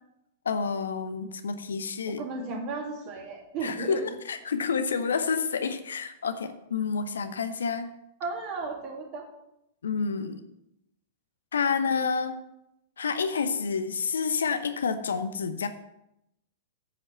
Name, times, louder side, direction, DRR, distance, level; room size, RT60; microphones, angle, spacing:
voice 1, 0.4-2.2 3.6-7.9 9.8-10.4 11.5-12.4 13.0-15.7, left 5 dB, 65° left, 9 dB, 0.8 m, -29 dB
voice 2, 2.1-4.1 8.2-9.2, right 3 dB, 40° right, 0 dB, 2.8 m, -35 dB
9.6 x 5.5 x 6.9 m, 0.83 s
figure-of-eight pair, 100°, 0 cm